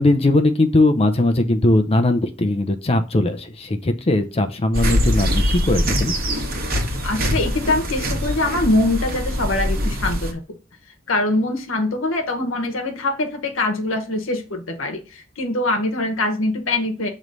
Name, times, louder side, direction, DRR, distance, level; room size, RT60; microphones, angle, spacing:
voice 1, 0.0-6.1, left 2 dB, 30° left, 8 dB, 0.6 m, -19 dB
sound 1, 4.7-10.3, equal, 50° right, 1.3 m, -23 dB
voice 2, 7.0-10.6 11.1-17.1, left 2 dB, 75° left, 4 dB, 1.1 m, -23 dB
6.4 x 3.1 x 5.3 m, 0.33 s
head